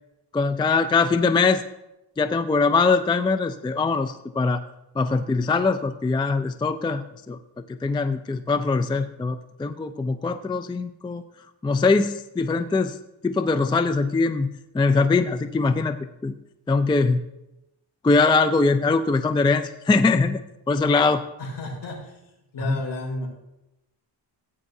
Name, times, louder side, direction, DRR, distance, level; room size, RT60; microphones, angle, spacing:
voice 1, 0.3-1.6 2.2-4.6 5.0-7.4 7.8-11.2 11.6-13.0 13.2-14.5 14.7-16.0 16.2-16.3 16.7-17.2 18.0-20.4 20.7-21.2 22.7-22.8, left 4 dB, 10° left, 9 dB, 0.3 m, -22 dB
voice 2, 21.4-23.3, left 1 dB, 65° left, -2 dB, 4.2 m, -33 dB
16.5 x 8.9 x 2.7 m, 0.92 s
cardioid pair, 110°, 44 cm